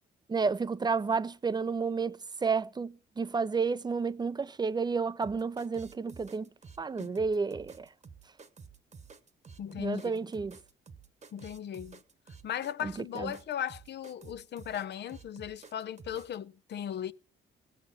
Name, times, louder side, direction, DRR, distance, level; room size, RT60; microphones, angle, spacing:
voice 1, 0.3-6.5 6.8-7.9 9.8-10.6 12.8-13.3, right 5 dB, 20° right, 0.6 m, -31 dB
sound 1, 5.2-16.4, right 5 dB, 35° right, 1.2 m, -51 dB
voice 2, 9.6-10.1 11.3-12.0 12.4-17.1, left 9 dB, 60° left, 0.7 m, -37 dB
17.5 x 6.5 x 7.5 m
cardioid pair, 90°, 20 cm